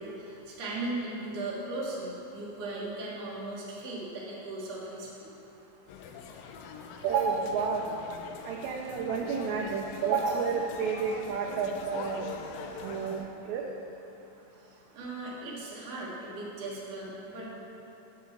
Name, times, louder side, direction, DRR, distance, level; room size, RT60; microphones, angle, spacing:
voice 1, 0.0-5.3 14.9-17.6, right 2 dB, 50° right, -6 dB, 2.4 m, -37 dB
sound 1, 5.9-13.3, left 5 dB, 85° left, 2.3 m, -43 dB
voice 2, 7.0-7.8 8.4-12.3 12.8-13.7, right 6 dB, 85° right, 0 dB, 1.6 m, -30 dB
7.4 x 6.0 x 7.2 m, 3.0 s
omnidirectional pair, 4.0 m